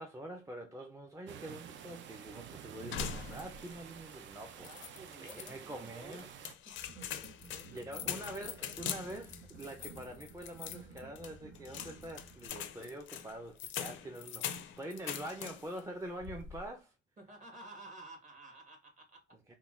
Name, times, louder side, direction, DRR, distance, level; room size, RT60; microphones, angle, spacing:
voice 1, 0.0-4.8 5.2-6.3 7.7-16.9 19.5-19.6, right 1 dB, 15° right, 0.5 m, -45 dB
sound 1, 1.3-6.5, right 9 dB, 70° right, 0.5 m, -50 dB
sound 2, 2.9-3.8 4.1-4.2 4.6-5.5 6.1-15.8 16.2-16.7, left 9 dB, 70° left, 0.4 m, -43 dB
voice 2, 4.6-6.3 6.6-6.8 7.5-9.0 17.2-19.6, right 2 dB, 40° right, 1.4 m, -53 dB
sound 3, 6.8-12.5, right 3 dB, 85° right, 0.9 m, -54 dB
3.6 x 2.2 x 2.4 m
cardioid pair, 90°, 20 cm